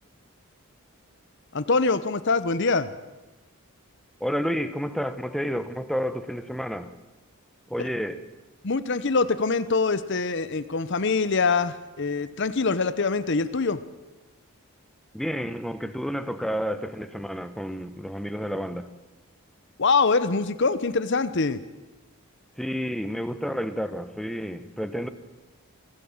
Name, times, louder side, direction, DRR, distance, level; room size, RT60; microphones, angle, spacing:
voice 1, 1.5-2.9 7.8-7.9 8.6-13.8 19.8-21.6, left 4 dB, 55° left, 13 dB, 0.9 m, -24 dB
voice 2, 4.2-6.9 7.7-8.2 15.1-18.9 22.6-25.1, equal, ahead, 10 dB, 1.0 m, -30 dB
24.0 x 16.0 x 7.3 m, 1.1 s
head